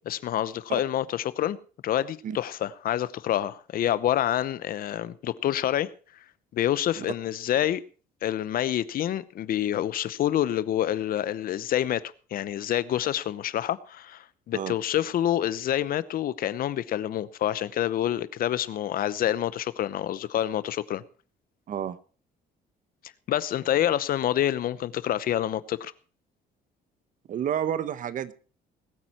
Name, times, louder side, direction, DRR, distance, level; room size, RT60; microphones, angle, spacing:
voice 1, 0.0-1.6 1.8-5.9 6.5-7.8 8.2-12.0 12.3-21.0 23.3-25.9, left 11 dB, 60° left, 0.8 m, -27 dB
voice 2, 27.3-28.3, right 9 dB, 50° right, 1.0 m, -30 dB
20.5 x 9.1 x 4.3 m
cardioid pair, 110°, 17 cm